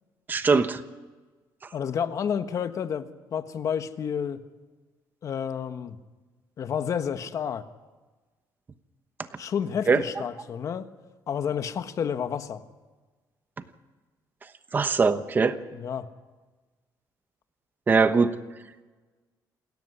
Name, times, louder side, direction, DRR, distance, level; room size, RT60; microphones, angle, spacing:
voice 1, 0.3-0.8 9.9-10.0 14.7-15.6 17.9-18.3, right 4 dB, 25° right, 10 dB, 1.1 m, -21 dB
voice 2, 1.7-4.4 5.2-6.0 6.6-7.6 9.4-10.9 11.3-12.6 15.7-16.1, left 7 dB, 45° left, 9 dB, 1.4 m, -30 dB
28.0 x 13.5 x 9.8 m, 1.3 s
cardioid pair, 145°, 7 cm